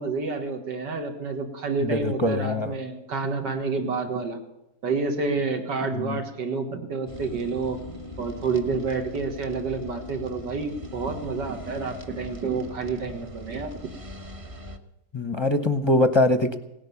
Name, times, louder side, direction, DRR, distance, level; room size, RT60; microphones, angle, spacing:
voice 1, 0.0-4.4 4.8-7.8 8.2-13.7, right 4 dB, 90° right, 4 dB, 2.2 m, -29 dB
voice 2, 1.8-2.7 5.9-6.2 15.1-16.6, left 1 dB, 25° left, 8 dB, 0.6 m, -23 dB
sound 1, 7.1-14.8, left 2 dB, 25° right, 1.0 m, -40 dB
17.5 x 11.0 x 7.0 m, 0.90 s
omnidirectional pair, 1.8 m